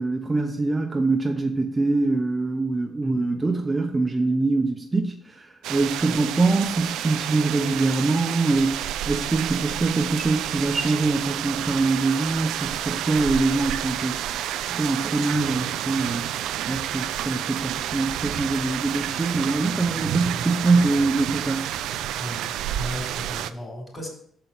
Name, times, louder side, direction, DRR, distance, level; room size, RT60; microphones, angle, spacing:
voice 1, 0.0-14.2 14.7-16.3 16.7-21.7, right 3 dB, 20° right, 2 dB, 0.9 m, -24 dB
voice 2, 3.0-3.4 6.0-6.2 20.3-20.5 22.2-24.1, equal, 25° left, 0 dB, 4.0 m, -36 dB
sound 1, 5.6-23.5, right 11 dB, 90° right, 0.4 m, -30 dB
6.7 x 5.5 x 6.0 m, 0.64 s
cardioid pair, 90°, 0 cm